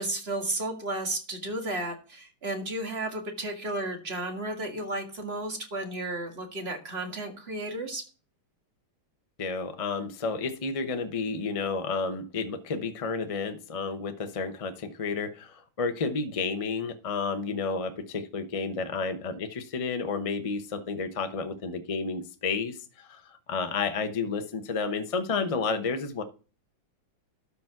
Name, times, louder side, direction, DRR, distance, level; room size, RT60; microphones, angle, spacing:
voice 1, 0.0-8.0, right 1 dB, 30° right, 4 dB, 2.0 m, -33 dB
voice 2, 9.4-23.2 23.5-26.2, left 4 dB, 55° left, 8 dB, 0.3 m, -31 dB
12.5 x 5.2 x 5.9 m, 0.36 s
omnidirectional pair, 2.3 m